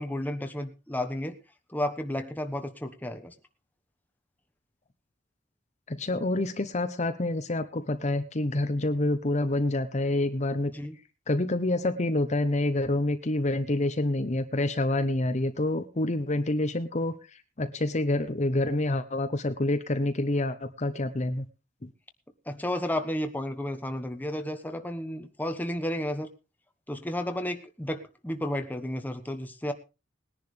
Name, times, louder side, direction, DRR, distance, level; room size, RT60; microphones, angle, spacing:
voice 1, 0.0-1.3 1.7-3.3 10.7-10.9 22.5-26.3 26.9-29.7, left 1 dB, 10° left, 6 dB, 1.2 m, -32 dB
voice 2, 5.9-10.7 11.3-17.2 17.6-21.5, left 2 dB, 40° left, 9 dB, 0.9 m, -27 dB
20.0 x 10.5 x 3.3 m, 0.30 s
head